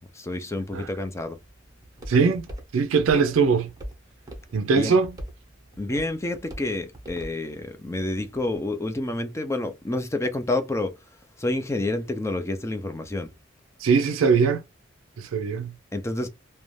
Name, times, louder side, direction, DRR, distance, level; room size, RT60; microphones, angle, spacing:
voice 1, 0.0-1.4 4.7-4.9 5.8-10.9 11.4-13.3 15.9-16.3, left 2 dB, 15° left, 0.5 m, -29 dB
Walk footsteps, 1.3-8.6, equal, 20° right, 0.8 m, -43 dB
voice 2, 2.1-2.5 2.7-3.7 4.5-5.1 13.8-14.6 15.2-15.7, right 5 dB, 85° right, 0.4 m, -21 dB
2.5 x 2.2 x 3.1 m
head